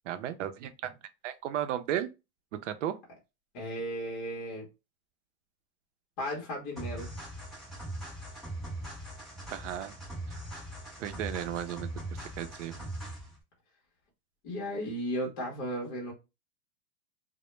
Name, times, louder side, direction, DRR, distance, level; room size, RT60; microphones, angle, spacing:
voice 1, 0.1-1.0 1.2-2.1 2.6-3.0 9.5-9.9 11.0-12.9, right 11 dB, 90° right, 0.5 m, -35 dB
voice 2, 3.5-4.6 6.2-7.1 14.4-16.1, equal, 35° left, 0.7 m, -35 dB
sound 1, 6.8-13.4, right 1 dB, ahead, 0.7 m, -40 dB
2.1 x 2.0 x 3.0 m
supercardioid pair, 160°, 36 cm